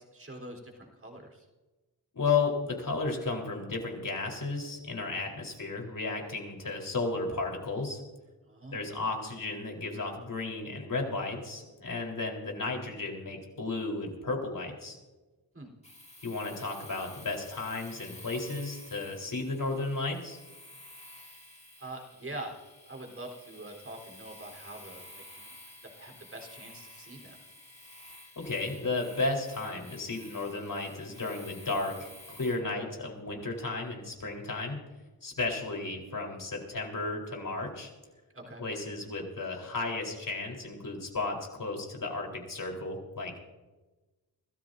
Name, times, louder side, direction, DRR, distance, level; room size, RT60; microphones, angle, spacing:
voice 1, 0.0-1.5 8.4-8.9 15.5-15.7 21.8-22.5 22.8-25.6 25.9-27.4 38.3-38.6, right 1 dB, 35° right, 2 dB, 3.9 m, -44 dB
voice 2, 2.1-8.0 8.7-15.0 16.2-20.4 28.4-34.8 35.2-37.9 38.6-43.4, left 3 dB, 55° left, 0 dB, 4.1 m, -33 dB
Domestic sounds home sounds, 15.8-32.6, left 1 dB, 15° left, 2.6 m, -51 dB
26.0 x 13.5 x 2.7 m, 1.2 s
cardioid pair, 50°, 40 cm